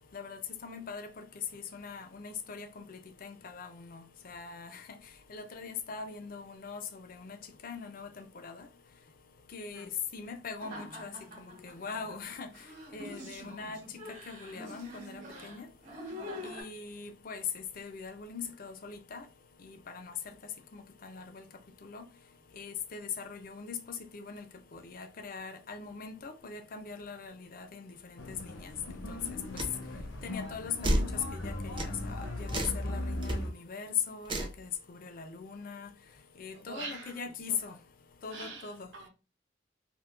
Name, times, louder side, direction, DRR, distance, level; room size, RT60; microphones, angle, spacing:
voice 1, 0.1-1.3 1.5-4.8 5.3-7.4 7.6-8.7 9.5-9.9 10.1-11.1 11.4-12.5 12.9-13.8 14.1-15.7 16.4-19.3 19.6-20.3 20.7-21.4 21.8-22.0 22.5-24.4 24.7-28.7 29.1-29.2 30.2-30.8 31.3-35.9 36.4-37.8 38.2-38.9, left 6 dB, 45° left, 0.4 m, -41 dB
sound 1, 10.6-16.6, left 1 dB, 45° right, 1.1 m, -45 dB
sound 2, 28.2-33.5, left 1 dB, 80° left, 0.7 m, -38 dB
sound 3, 29.6-29.7 30.8-31.1 31.8-31.9 32.5-32.8 33.2-33.4 34.3-34.6, right 1 dB, 25° right, 0.5 m, -30 dB
voice 2, 36.5-37.2 37.5-37.8 38.3-39.1, right 3 dB, 70° right, 0.8 m, -45 dB
3.6 x 2.4 x 2.4 m
head